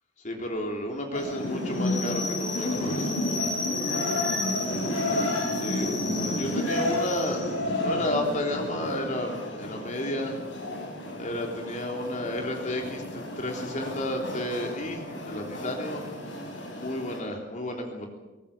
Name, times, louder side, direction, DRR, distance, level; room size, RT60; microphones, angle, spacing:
voice 1, 0.2-3.1 5.5-7.5 7.8-10.3 11.2-16.0 16.7-18.1, left 1 dB, 40° left, 2 dB, 3.5 m, -32 dB
sound 1, 1.1-17.2, left 1 dB, 85° left, 7.2 m, -31 dB
22.5 x 19.0 x 7.3 m, 1.1 s
head